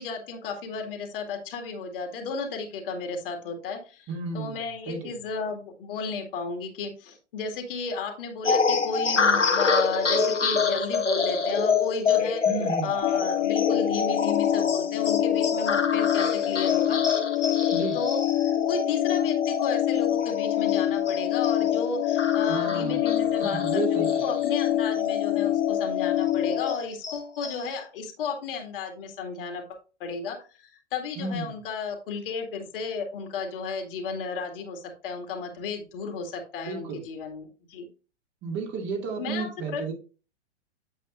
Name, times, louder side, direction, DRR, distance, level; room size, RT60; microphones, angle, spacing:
voice 1, 0.0-4.1 4.3-12.4 12.8-17.0 17.9-37.9 39.2-39.9, left 5 dB, 50° left, 4 dB, 2.2 m, -33 dB
voice 2, 4.1-5.1 12.5-12.9 17.7-18.0 22.5-24.3 31.2-31.5 36.6-37.0 38.4-39.9, right 4 dB, 30° right, 1 dB, 2.4 m, -33 dB
sound 1, 8.4-25.3 25.7-25.8 26.2-27.8, left 5 dB, 85° left, 1.1 m, -27 dB
sound 2, 13.0-26.8, left 11 dB, 20° left, 0.3 m, -25 dB
8.8 x 7.5 x 2.5 m, 0.34 s
figure-of-eight pair, 105°, 35 cm